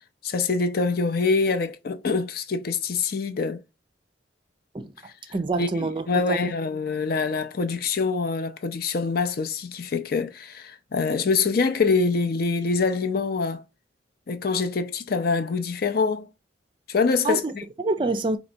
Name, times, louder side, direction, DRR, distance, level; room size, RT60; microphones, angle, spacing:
voice 1, 0.2-3.6 5.6-13.6 14.3-16.3 16.9-17.4, left 4 dB, 55° left, 0.5 m, -25 dB
voice 2, 5.3-6.4 17.2-18.4, right 3 dB, 25° right, 0.4 m, -27 dB
4.4 x 2.9 x 2.6 m
head